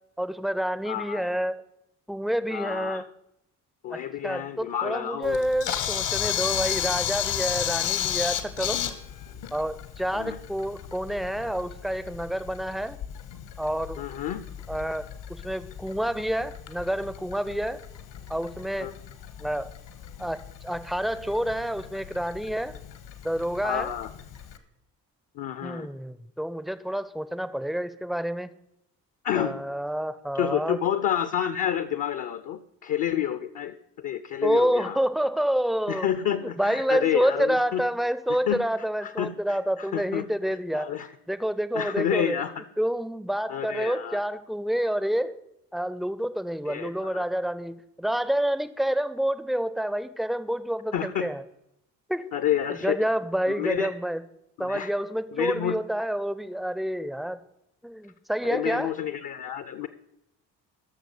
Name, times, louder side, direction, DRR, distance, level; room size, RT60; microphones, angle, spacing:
voice 1, 0.2-1.6 2.1-3.0 3.9-8.8 9.5-13.0 13.6-14.0 14.7-17.8 18.3-18.9 19.4-19.7 20.2-22.7 23.2-23.9 25.6-28.5 29.4-30.8 34.4-36.1 36.4-40.9 41.3-42.4 42.8-45.4 45.7-51.4 52.1-52.3 52.7-54.2 54.6-57.4 57.8-58.9, equal, ahead, 15 dB, 0.6 m, -28 dB
voice 2, 0.9-1.3 2.5-3.0 3.8-5.4 10.1-10.4 14.0-14.4 18.8-18.9 23.6-24.1 25.3-25.9 29.2-29.6 30.3-35.0 35.9-37.8 38.3-38.7 39.0-40.3 40.7-41.1 41.7-42.6 43.5-44.2 46.7-47.2 50.9-51.3 52.3-53.0 53.5-53.9 54.6-54.9 55.3-55.8 58.4-59.9, left 10 dB, 40° left, 11 dB, 0.7 m, -29 dB
Camera, 5.2-24.6, left 10 dB, 60° left, 1.3 m, -34 dB
12.5 x 6.4 x 5.0 m, 0.82 s
figure-of-eight pair, 45°, 48 cm